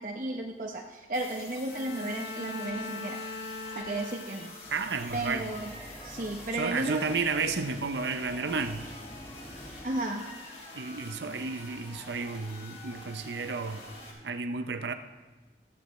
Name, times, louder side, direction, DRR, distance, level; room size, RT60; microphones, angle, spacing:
voice 1, 0.0-3.2 3.7-4.5 5.1-5.7 6.0-7.1 9.8-10.3, right 2 dB, 50° right, 0 dB, 0.9 m, -33 dB
sound 1, 1.1-14.1, left 2 dB, 35° left, 3.4 m, -47 dB
Bowed string instrument, 1.7-4.9, left 3 dB, 70° left, 1.0 m, -40 dB
sound 2, 4.6-9.9, equal, 15° left, 1.6 m, -48 dB
voice 2, 4.7-5.5 6.5-8.9 10.7-13.9 14.2-14.9, right 4 dB, 85° right, 8 dB, 0.7 m, -32 dB
15.5 x 14.0 x 3.2 m, 1.2 s
head